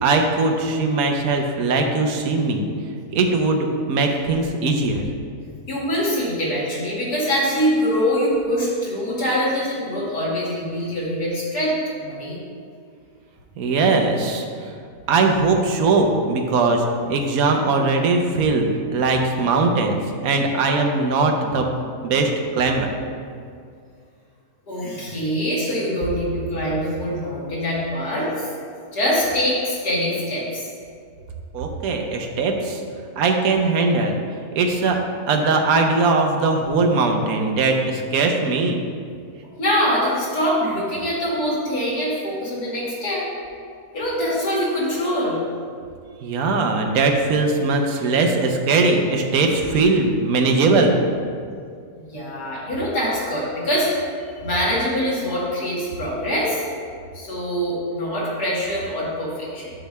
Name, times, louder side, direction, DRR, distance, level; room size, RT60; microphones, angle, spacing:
voice 1, 0.0-2.6 3.1-5.0 13.6-14.7 15.1-21.7 22.0-22.9 31.5-32.8 33.2-34.2 34.5-35.0 35.3-38.8 46.2-51.0, right 3 dB, 65° right, 3 dB, 1.2 m, -20 dB
voice 2, 5.7-12.4 24.7-28.5 28.9-30.7 39.6-43.2 43.9-45.4 52.0-53.9 54.4-56.6 57.1-59.7, equal, 75° left, -7 dB, 2.7 m, -24 dB
9.3 x 3.4 x 6.5 m, 2.2 s
omnidirectional pair, 1.7 m